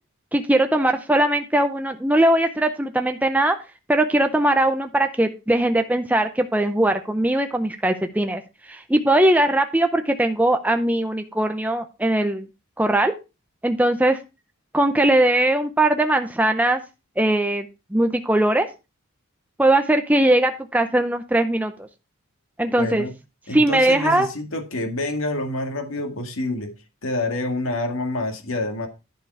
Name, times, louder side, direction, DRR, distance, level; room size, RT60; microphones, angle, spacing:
voice 1, 0.3-3.6 3.9-8.4 8.7-12.5 12.8-13.1 13.6-14.2 14.7-16.8 17.2-18.7 19.6-21.9 22.6-23.1 23.5-24.3, right 1 dB, 5° right, 0.6 m, -20 dB
voice 2, 22.8-23.1 23.5-26.7 27.0-28.9, left 2 dB, 70° left, 2.1 m, -27 dB
11.0 x 5.3 x 4.7 m
head